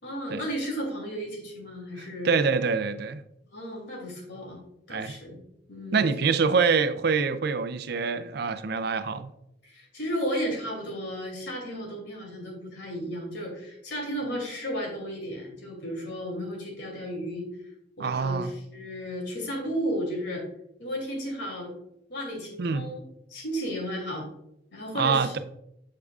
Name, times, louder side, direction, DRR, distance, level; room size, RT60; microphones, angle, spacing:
voice 1, 0.0-2.3 3.5-4.6 4.9-5.4 5.7-6.0 9.6-17.5 18.0-20.4 20.8-21.7 22.1-23.0 23.3-24.3 24.7-25.3, equal, 70° left, 0 dB, 2.7 m, -33 dB
voice 2, 2.0-3.2 4.9-5.1 5.9-9.3 18.0-18.5 22.6-22.9 24.9-25.4, right 5 dB, 60° right, 11 dB, 0.5 m, -25 dB
8.2 x 6.7 x 2.4 m, 0.81 s
head